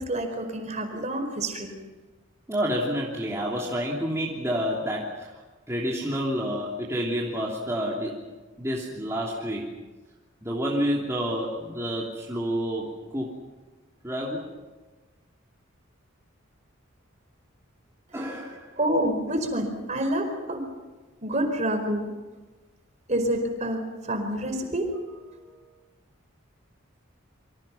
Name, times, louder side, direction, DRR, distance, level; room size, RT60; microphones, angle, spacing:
voice 1, 0.0-1.7 18.3-18.4 18.8-20.6 21.2-22.1 23.1-24.9, right 1 dB, 35° right, 5 dB, 4.6 m, -28 dB
voice 2, 2.5-5.4 5.7-8.2 8.6-9.7 10.4-13.3 14.0-14.5 18.1-18.7 25.3-25.5, equal, 15° right, -4 dB, 3.1 m, -29 dB
27.5 x 25.0 x 5.8 m, 1.2 s
head